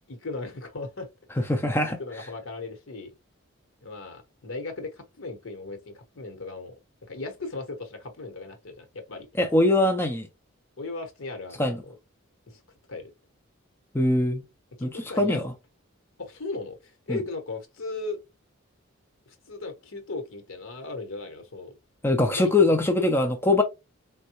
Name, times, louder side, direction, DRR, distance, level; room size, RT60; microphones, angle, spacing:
voice 1, 0.1-1.1 1.4-1.5 1.9-3.1 3.8-6.8 7.1-9.3 10.8-11.9 12.5-12.6 12.9-13.1 14.8-15.4 16.2-18.2 19.3-21.7 22.3-22.8, left 3 dB, 70° left, 0.9 m, -37 dB
voice 2, 1.4-2.0 9.4-10.3 11.6-11.8 13.9-14.4 14.8-15.5 17.1-17.2 22.0-23.6, left 2 dB, 10° left, 0.4 m, -22 dB
3.6 x 2.2 x 2.8 m
head